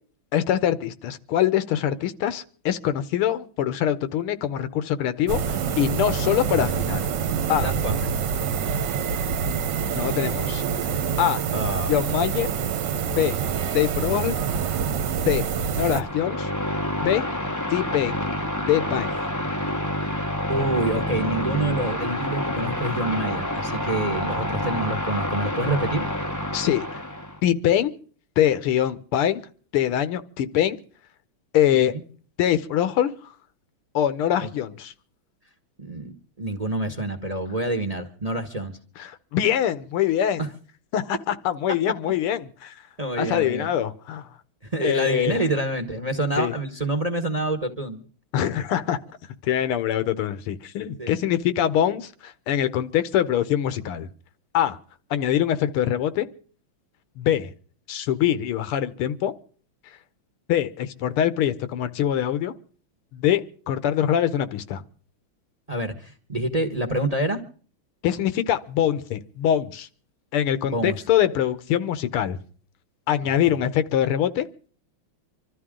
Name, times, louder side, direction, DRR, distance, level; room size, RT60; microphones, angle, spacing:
voice 1, 0.3-7.1 7.5-7.7 9.9-10.9 11.2-11.4 11.9-12.5 13.1-13.4 13.7-14.4 15.3-16.5 17.0-17.2 17.7-18.2 18.7-19.2 26.5-27.0 27.4-27.9 28.4-29.4 29.7-30.8 31.5-31.9 32.4-33.1 33.9-34.9 39.0-40.4 40.9-42.7 43.2-44.3 44.8-45.4 46.4-46.5 48.3-49.0 49.4-54.1 54.5-54.8 55.1-56.3 57.2-57.5 57.9-59.3 60.5-62.5 63.1-64.8 68.0-69.9 70.3-72.4 73.1-74.5, left 10 dB, 80° left, 13 dB, 1.8 m, -24 dB
sound 1, 5.3-16.0, right 7 dB, 60° right, 1.4 m, -26 dB
voice 2, 7.6-8.0 11.5-12.0 20.5-26.1 31.9-32.0 34.4-34.5 35.8-36.1 36.4-38.7 40.4-40.5 43.0-43.7 44.7-48.0 51.0-51.2 65.7-67.4 70.6-71.0 73.2-73.6, right 1 dB, 20° right, 6 dB, 1.0 m, -27 dB
sound 2, 15.9-27.4, left 1 dB, 25° left, 0.4 m, -28 dB
25.5 x 13.0 x 3.7 m, 0.43 s
omnidirectional pair, 2.4 m